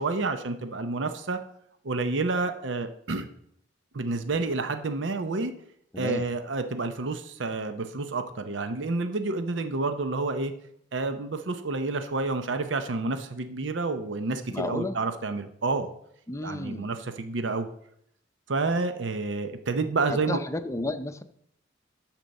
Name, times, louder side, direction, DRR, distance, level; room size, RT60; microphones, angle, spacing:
voice 1, 0.0-1.4 1.8-3.3 3.9-5.5 6.0-10.5 10.9-15.9 16.4-17.7 18.5-20.4, right 3 dB, 75° right, 9 dB, 0.7 m, -29 dB
voice 2, 5.9-6.3 14.5-15.0 16.3-16.9 20.1-21.2, left 2 dB, 15° left, 9 dB, 0.6 m, -32 dB
12.5 x 4.5 x 6.4 m, 0.73 s
head